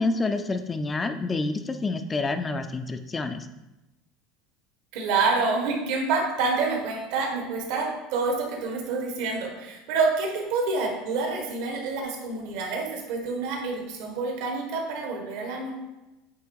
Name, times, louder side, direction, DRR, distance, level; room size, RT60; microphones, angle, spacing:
voice 1, 0.0-3.5, left 3 dB, 15° left, 9 dB, 0.4 m, -28 dB
voice 2, 4.9-15.7, right 4 dB, 65° right, 1 dB, 1.4 m, -27 dB
8.4 x 3.4 x 4.7 m, 1.0 s
cardioid pair, 160°, 0 cm